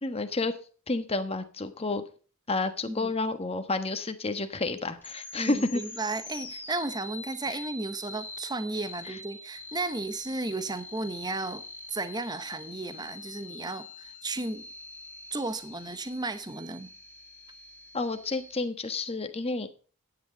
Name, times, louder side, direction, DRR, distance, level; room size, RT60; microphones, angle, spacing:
voice 1, 0.0-0.5 0.9-2.0 2.5-5.8 7.5-7.6 9.0-9.2 17.9-19.7, left 3 dB, 25° left, 1.2 m, -30 dB
sound 1, 5.0-18.7, left 2 dB, 10° left, 2.9 m, -44 dB
voice 2, 5.4-11.6 11.9-14.6 15.3-16.9, right 2 dB, 20° right, 0.9 m, -34 dB
12.0 x 9.9 x 3.8 m
head